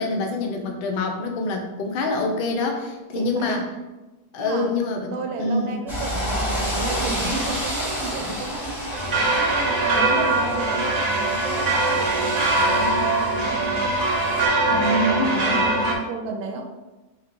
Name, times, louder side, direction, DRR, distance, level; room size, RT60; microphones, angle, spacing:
voice 1, 0.0-3.6 4.3-5.9 14.7-15.6, left 2 dB, 60° left, 3 dB, 0.6 m, -26 dB
voice 2, 3.1-3.6 4.4-4.7 5.1-8.8 9.1-13.9 14.6-16.7, right 3 dB, 85° right, 4 dB, 1.1 m, -32 dB
sound 1, 5.9-14.5, equal, ahead, 0.8 m, -30 dB
sound 2, 8.9-15.9, right 2 dB, 50° right, 0.4 m, -22 dB
3.5 x 2.8 x 3.6 m, 1.1 s
omnidirectional pair, 1.6 m